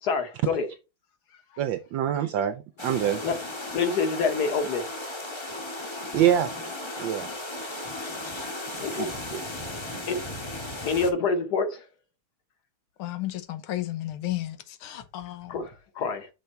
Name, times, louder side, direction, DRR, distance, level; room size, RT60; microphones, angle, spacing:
voice 1, 0.0-0.7 3.2-3.3 3.7-4.9 8.8-9.1 10.1-10.2 10.8-11.9 15.5-16.3, left 4 dB, 55° left, 1.3 m, -27 dB
voice 2, 1.6-3.2 6.1-6.5 7.0-7.3 9.0-9.4, right 10 dB, 75° right, 1.2 m, -25 dB
sound 1, 2.8-11.1, left 1 dB, 20° left, 0.7 m, -36 dB
voice 3, 13.0-15.6, left 15 dB, 85° left, 1.7 m, -33 dB
6.2 x 3.4 x 5.3 m
omnidirectional pair, 2.3 m